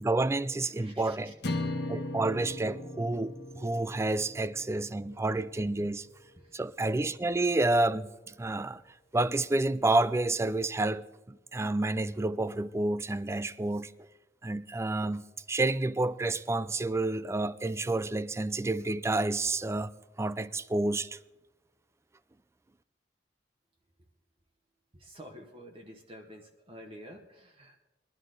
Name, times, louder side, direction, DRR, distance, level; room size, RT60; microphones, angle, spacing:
voice 1, 0.0-1.3 1.9-6.1 6.5-8.1 8.4-8.8 9.1-13.9 14.4-19.9 20.2-21.2, right 2 dB, 15° right, 0.4 m, -29 dB
voice 2, 0.8-1.3 6.4-6.5 24.9-27.8, equal, 30° right, 1.0 m, -49 dB
sound 1, 1.4-5.8, left 2 dB, 65° left, 1.2 m, -38 dB
21.0 x 11.0 x 3.9 m
head